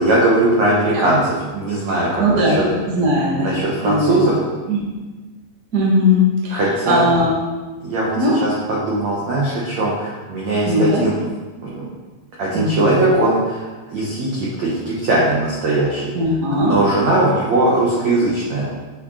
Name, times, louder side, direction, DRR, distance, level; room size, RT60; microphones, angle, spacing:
voice 1, 0.0-2.6 3.3-4.4 6.5-7.1 7.8-8.1 8.4-11.2 11.6-11.8 12.4-16.0 16.6-18.7, right 2 dB, 75° right, -6 dB, 1.6 m, -19 dB
voice 2, 2.2-2.6 2.9-4.3 4.7-4.8 5.7-6.6 6.9-7.3 8.1-8.4 10.6-11.0 12.5-13.0 16.1-16.7, left 1 dB, 45° right, -5 dB, 1.2 m, -18 dB
9.5 x 6.0 x 4.1 m, 1.2 s
omnidirectional pair, 5.4 m